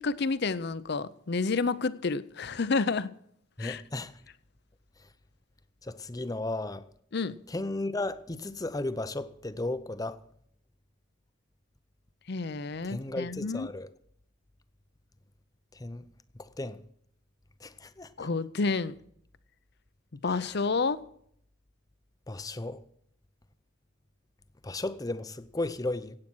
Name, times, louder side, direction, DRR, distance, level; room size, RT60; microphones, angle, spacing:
voice 1, 0.0-3.1 3.6-3.8 7.1-7.3 12.3-13.7 18.2-18.9 20.2-21.0, left 4 dB, 55° left, 0.6 m, -29 dB
voice 2, 3.6-4.1 5.8-6.8 7.5-10.2 12.8-13.9 15.8-16.0 16.4-16.8 17.6-18.1 20.4-20.5 22.3-22.8 24.6-26.2, left 2 dB, 20° left, 0.6 m, -34 dB
16.0 x 8.8 x 6.2 m
head